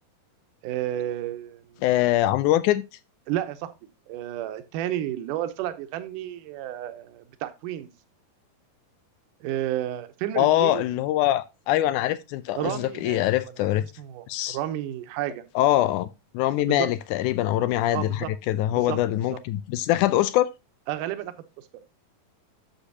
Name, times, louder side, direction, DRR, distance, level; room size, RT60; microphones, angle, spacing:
voice 1, 0.6-1.8 3.3-3.7 4.1-7.9 9.4-10.8 12.6-13.3 13.8-15.4 16.7-16.9 17.9-18.3 18.7-19.0 19.3-19.4 20.9-21.3, right 12 dB, 75° right, 2.3 m, -31 dB
voice 2, 1.8-2.8 10.4-13.8 14.3-14.6 15.5-16.1 16.3-20.5, left 14 dB, 85° left, 1.7 m, -23 dB
11.5 x 6.8 x 2.8 m
omnidirectional pair, 4.1 m